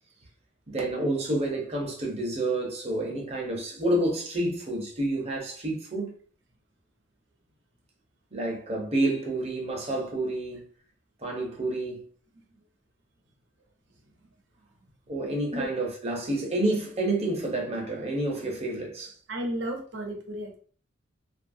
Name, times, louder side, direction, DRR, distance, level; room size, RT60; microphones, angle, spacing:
voice 1, 0.7-6.1 8.3-10.7 11.2-12.1 15.1-19.1, right 1 dB, 35° right, 0.8 m, -29 dB
voice 2, 19.3-20.6, equal, 75° right, 0.8 m, -33 dB
2.7 x 2.4 x 2.6 m
head